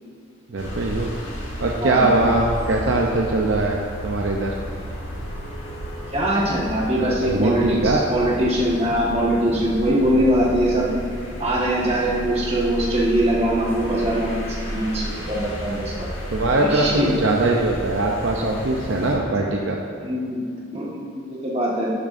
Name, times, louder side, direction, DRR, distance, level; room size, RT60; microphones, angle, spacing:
voice 1, 0.5-1.1 1.6-4.5 7.0-8.0 16.3-19.8, right 2 dB, 60° right, 0 dB, 0.6 m, -21 dB
sound 1, 0.6-19.2, equal, 65° left, 1.8 m, -33 dB
voice 2, 6.1-10.9 11.4-16.1 16.6-17.1 20.0-20.4 20.7-21.9, right 1 dB, 30° right, -5 dB, 1.4 m, -22 dB
12.0 x 7.0 x 2.6 m, 2.3 s
head